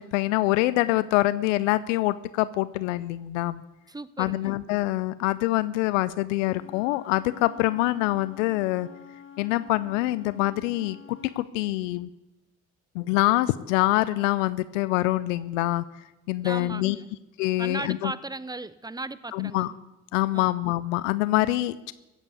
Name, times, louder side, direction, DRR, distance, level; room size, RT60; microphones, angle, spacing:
voice 1, 0.0-3.6 4.2-8.9 9.4-12.1 12.9-17.0 17.4-18.1 19.3-19.7 20.1-21.9, left 17 dB, 85° left, 17 dB, 0.5 m, -25 dB
voice 2, 3.9-4.6 16.4-17.1 17.6-19.7 20.3-20.5, right 2 dB, 10° right, 16 dB, 0.9 m, -36 dB
Wind instrument woodwind instrument, 6.4-11.5, left 7 dB, 35° left, 1.3 m, -48 dB
15.0 x 8.4 x 8.3 m, 1.0 s
hypercardioid pair, 55°, 37 cm